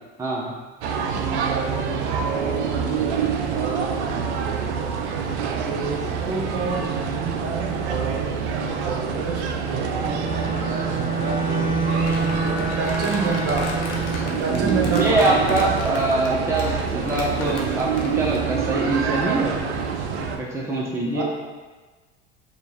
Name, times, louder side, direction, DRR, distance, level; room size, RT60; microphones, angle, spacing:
voice 1, 0.2-0.6 14.5-19.6 20.4-21.2, right 2 dB, 10° right, -4 dB, 0.7 m, -24 dB
sound 1, 0.8-20.4, right 6 dB, 75° right, 0.5 m, -26 dB
voice 2, 1.1-4.0 5.7-8.4 8.8-13.7 14.4-15.7 21.1-21.2, right 4 dB, 45° right, -1 dB, 1.0 m, -29 dB
Bowed string instrument, 9.9-14.4, right 3 dB, 85° left, 0.7 m, -27 dB
Crumpling crinkling, 11.9-18.5, left 1 dB, 45° left, 0.9 m, -35 dB
5.1 x 2.4 x 3.1 m, 1.3 s
hypercardioid pair, 70°, 34 cm